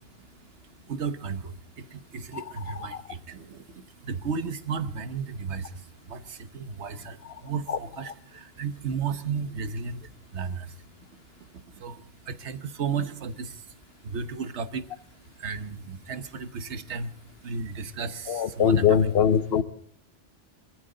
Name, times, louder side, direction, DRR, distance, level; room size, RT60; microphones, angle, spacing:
voice 1, 0.0-19.1, right 5 dB, 70° right, 1.3 m, -35 dB
voice 2, 2.3-3.0 7.2-7.4 7.7-7.8 18.3-19.6, left 8 dB, 60° left, 1.0 m, -23 dB
25.5 x 14.0 x 3.9 m
omnidirectional pair, 1.2 m